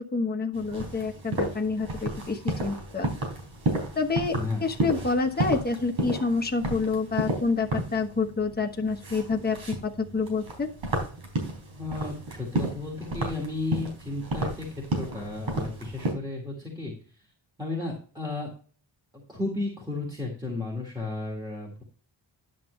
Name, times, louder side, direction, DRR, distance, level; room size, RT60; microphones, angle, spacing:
voice 1, 0.1-3.1 3.9-4.3 4.6-9.6 9.8-10.7, left 4 dB, 20° left, 3 dB, 1.1 m, -28 dB
sound 1, 0.5-16.1, right 1 dB, 75° right, 3.9 m, -32 dB
voice 2, 4.3-4.7 11.8-14.7 14.9-16.9 17.6-18.5 19.1-21.8, left 3 dB, 10° right, -2 dB, 1.8 m, -33 dB
10.5 x 7.6 x 3.2 m, 0.40 s
wide cardioid pair, 175°, 47 cm